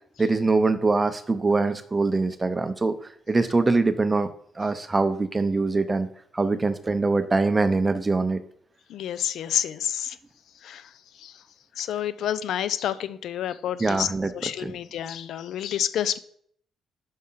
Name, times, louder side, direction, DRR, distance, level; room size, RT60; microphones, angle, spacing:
voice 1, 0.2-2.9 3.3-4.3 4.6-6.1 6.3-8.4 13.8-14.3 14.6-14.7, right 3 dB, 20° right, 10 dB, 0.6 m, -23 dB
voice 2, 8.9-10.2 10.6-10.9 11.2-11.4 11.8-14.1 14.3-16.2, left 10 dB, 75° left, 15 dB, 0.3 m, -29 dB
5.6 x 4.8 x 5.6 m, 0.63 s
cardioid pair, 90°, 0 cm